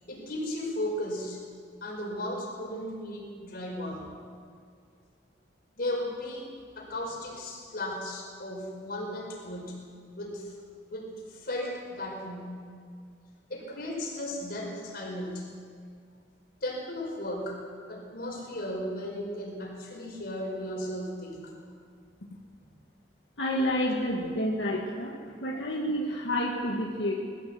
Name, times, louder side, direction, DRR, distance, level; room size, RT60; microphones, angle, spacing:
voice 1, 0.1-1.4 1.8-4.2 5.8-6.4 6.8-9.8 10.2-10.5 10.9-12.6 13.5-15.5 16.6-17.6 17.9-21.5, left 1 dB, 60° left, 0 dB, 5.3 m, -35 dB
voice 2, 23.4-25.1 25.4-27.1, equal, 90° left, -2 dB, 2.1 m, -29 dB
21.0 x 16.0 x 8.0 m, 2.1 s
head